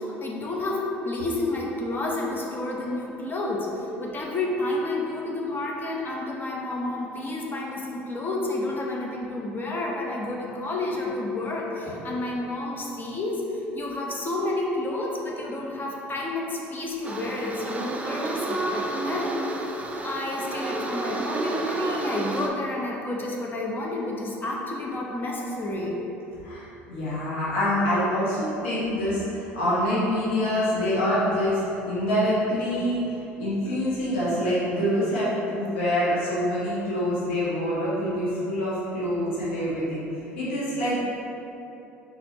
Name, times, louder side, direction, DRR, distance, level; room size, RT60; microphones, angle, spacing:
voice 1, 0.0-19.6 20.0-26.0, left 2 dB, 30° left, -2 dB, 0.9 m, -30 dB
sound 1, 17.0-22.5, right 2 dB, 20° right, 0.5 m, -30 dB
voice 2, 26.4-40.0 40.4-41.0, equal, 75° left, -9 dB, 1.1 m, -26 dB
4.3 x 4.1 x 2.9 m, 3.0 s
hypercardioid pair, 65°, 6 cm